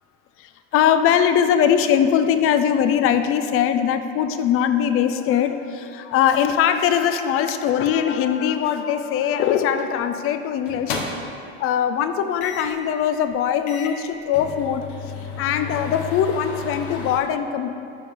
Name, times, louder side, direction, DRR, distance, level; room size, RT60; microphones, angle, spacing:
voice 1, 0.4-11.3 11.6-17.7, left 9 dB, 45° left, 9 dB, 0.6 m, -21 dB
sound 1, 9.8-10.0 10.7-11.4 12.4-12.8 13.3-13.4 13.7-17.2, left 5 dB, 80° left, 1.0 m, -32 dB
11.5 x 4.9 x 3.5 m, 2.7 s
supercardioid pair, 100°, 31 cm